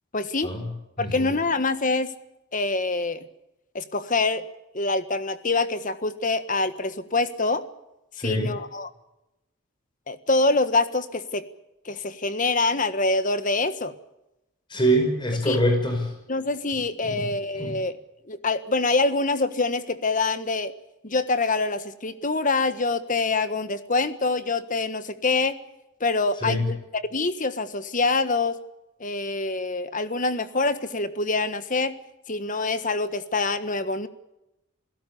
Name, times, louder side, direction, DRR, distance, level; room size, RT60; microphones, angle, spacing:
voice 1, 0.1-0.5 1.0-2.1 2.5-3.3 3.7-4.4 4.7-7.6 8.2-8.9 10.1-11.4 11.8-13.9 15.5-15.8 16.3-18.0 18.3-20.7 21.0-25.6 26.0-26.8 27.1-28.6 29.0-32.0 32.3-34.1, left 3 dB, 40° left, 12 dB, 1.4 m, -25 dB
voice 2, 1.0-1.3 8.2-8.5 14.7-16.1 17.0-17.3 17.5-17.8 26.4-26.7, equal, 25° left, 3 dB, 5.6 m, -24 dB
28.0 x 17.0 x 7.1 m, 0.91 s
head